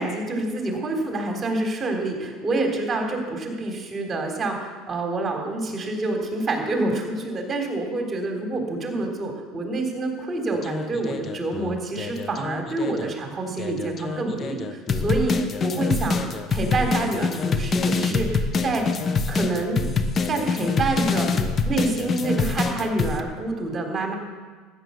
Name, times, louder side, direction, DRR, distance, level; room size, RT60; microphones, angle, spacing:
voice 1, 0.0-16.2 16.5-18.9 19.3-19.8 20.2-24.1, right 2 dB, 30° right, 2 dB, 3.5 m, -27 dB
sound 1, 10.5-13.1 13.6-23.2, left 4 dB, 35° left, 1.1 m, -25 dB
13.5 x 9.6 x 7.1 m, 1.4 s
supercardioid pair, 100°, 0 cm